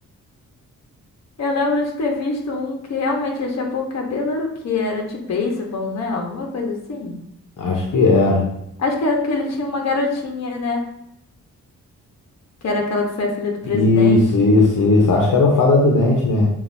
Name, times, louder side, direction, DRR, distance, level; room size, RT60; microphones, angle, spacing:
voice 1, 1.4-7.1 8.8-10.8 12.6-14.2, left 3 dB, 55° left, 1 dB, 1.1 m, -24 dB
voice 2, 7.6-8.4 13.7-16.5, left 3 dB, 70° left, -1 dB, 1.0 m, -16 dB
7.1 x 2.6 x 2.6 m, 0.76 s
cardioid pair, 80°, 33 cm